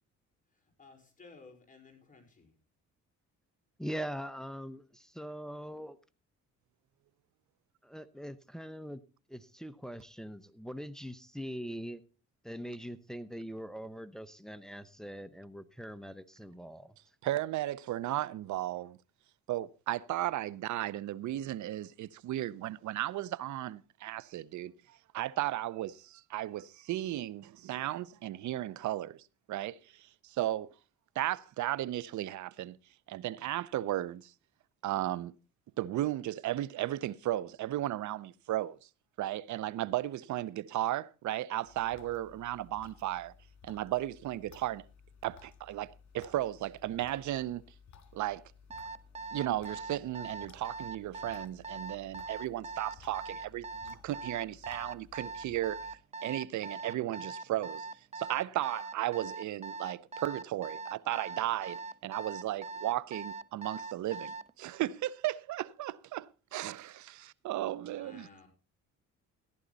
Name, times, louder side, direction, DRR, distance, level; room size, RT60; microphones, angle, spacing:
voice 1, 0.8-2.5 67.6-68.5, left 4 dB, 25° left, 4.9 m, -56 dB
voice 2, 3.8-6.0 7.8-9.0 9.3-12.0 12.4-17.0, equal, ahead, 0.9 m, -42 dB
voice 3, 17.2-19.0 19.5-24.7 25.1-29.2 29.5-29.8 30.2-30.7 31.2-32.8 33.1-34.3 34.8-35.3 35.8-38.8 39.2-43.3 43.6-44.8 45.2-47.6 48.1-48.4 49.3-55.9 56.2-57.9 58.1-68.3, right 14 dB, 75° right, 0.7 m, -35 dB
sound 1, 41.6-56.0, left 6 dB, 70° left, 2.0 m, -57 dB
Alarm, 48.7-64.5, right 3 dB, 20° right, 0.6 m, -41 dB
14.5 x 11.0 x 4.0 m
cardioid pair, 90°, 30 cm